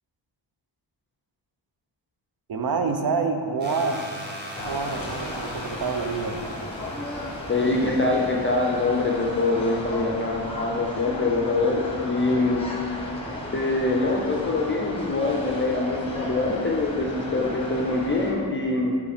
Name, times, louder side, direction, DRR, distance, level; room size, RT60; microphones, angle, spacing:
voice 1, 2.5-4.0 4.6-6.4, right 4 dB, 55° right, 6 dB, 0.6 m, -27 dB
sound 1, 3.6-10.4, equal, 20° right, 1.1 m, -42 dB
sound 2, 4.5-18.3, left 1 dB, 10° left, 0.9 m, -35 dB
voice 2, 7.5-12.6 13.5-19.0, left 2 dB, 25° left, -1 dB, 0.5 m, -24 dB
5.2 x 5.1 x 5.0 m, 2.6 s
wide cardioid pair, 175°, 46 cm